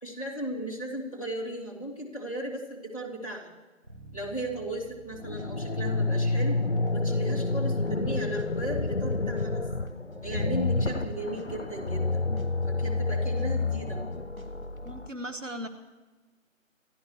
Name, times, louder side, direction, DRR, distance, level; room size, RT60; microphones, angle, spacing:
voice 1, 0.0-3.5 4.1-6.6 6.9-9.6 10.2-12.2 12.6-14.0, right 1 dB, 25° left, -5 dB, 2.6 m, -36 dB
Bass guitar, 3.8-13.6, right 2 dB, 40° right, 4.6 m, -57 dB
sound 1, 4.8-14.9, equal, 90° right, 2.9 m, -52 dB
sound 2, 5.2-15.1, left 3 dB, 55° left, 0.6 m, -29 dB
voice 2, 14.9-15.7, equal, 65° right, 8 dB, 1.7 m, -37 dB
27.0 x 14.5 x 3.2 m, 1.2 s
figure-of-eight pair, 175°, 41 cm